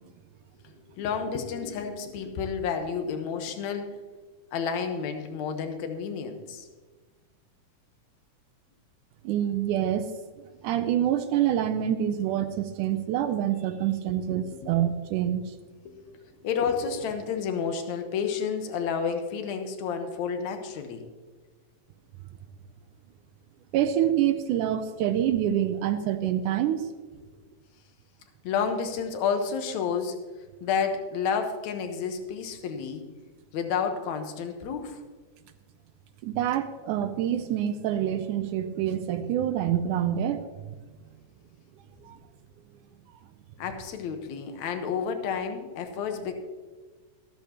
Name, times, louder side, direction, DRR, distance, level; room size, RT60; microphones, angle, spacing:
voice 1, 0.6-4.0 4.5-6.7 14.1-14.2 14.5-14.7 15.9-21.0 28.4-30.2 30.6-33.0 33.5-35.0 43.6-46.3, left 6 dB, 70° left, 6 dB, 2.3 m, -30 dB
voice 2, 9.2-10.1 10.6-15.4 23.7-26.9 36.2-40.5 42.0-42.2, right 10 dB, 80° right, 8 dB, 2.1 m, -26 dB
13.5 x 13.5 x 2.9 m, 1.4 s
omnidirectional pair, 3.7 m